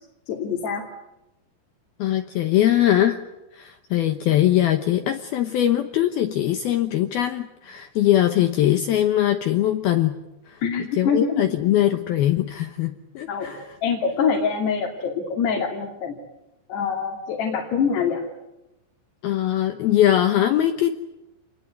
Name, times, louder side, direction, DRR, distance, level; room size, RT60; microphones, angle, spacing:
voice 1, 0.3-0.8 10.6-11.4 13.3-13.5 13.8-16.2 16.7-18.2, left 6 dB, 60° left, -1 dB, 4.7 m, -24 dB
voice 2, 2.0-3.2 3.5-10.2 10.5-10.6 11.0-13.7 19.2-21.0, left 12 dB, 75° left, 8 dB, 2.2 m, -21 dB
28.5 x 21.0 x 9.5 m, 0.93 s
omnidirectional pair, 5.8 m